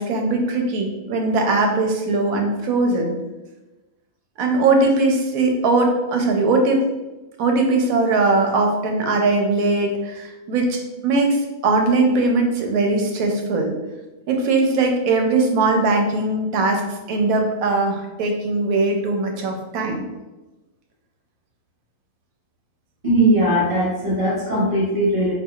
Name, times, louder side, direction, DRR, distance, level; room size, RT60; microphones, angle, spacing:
voice 1, 0.0-3.1 4.4-6.8 7.4-10.8 11.0-13.7 14.3-16.8 17.1-20.1, right 3 dB, 85° right, 2 dB, 1.1 m, -20 dB
voice 2, 23.0-25.3, right 1 dB, 40° right, -6 dB, 1.5 m, -19 dB
4.5 x 2.6 x 2.3 m, 1.1 s
omnidirectional pair, 1.4 m